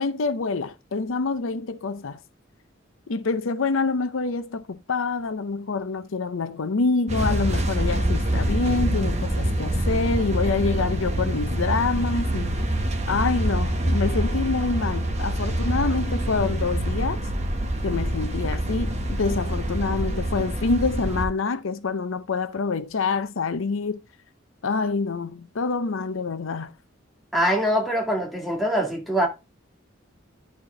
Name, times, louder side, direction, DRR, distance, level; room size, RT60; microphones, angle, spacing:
voice 1, 0.0-2.2 3.1-12.7 13.1-17.2 17.8-24.0 24.6-26.7, left 4 dB, 80° left, 0.6 m, -26 dB
sound 1, 7.1-21.2, right 1 dB, 35° right, 1.1 m, -25 dB
voice 2, 27.3-29.3, equal, ahead, 1.8 m, -23 dB
10.5 x 4.3 x 3.8 m
head